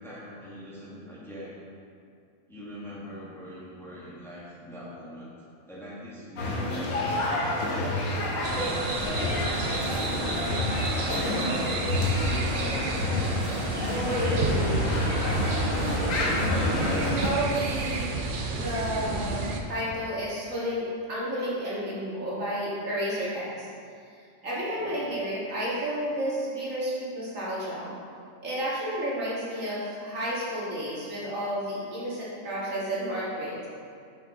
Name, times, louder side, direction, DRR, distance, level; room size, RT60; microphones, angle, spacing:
voice 1, 0.0-1.6 2.5-5.3 5.6-9.1 9.7-12.0 12.2-15.3 24.8-25.0, equal, ahead, -8 dB, 1.4 m, -43 dB
sound 1, 6.4-17.3, left 2 dB, 75° left, 1.3 m, -28 dB
sound 2, 8.4-19.6, right 3 dB, 55° right, 0.6 m, -31 dB
voice 2, 16.7-18.1 18.5-23.7 24.4-27.9 28.4-33.7, equal, 70° right, -8 dB, 2.2 m, -31 dB
6.9 x 6.3 x 3.6 m, 2.3 s
omnidirectional pair, 1.4 m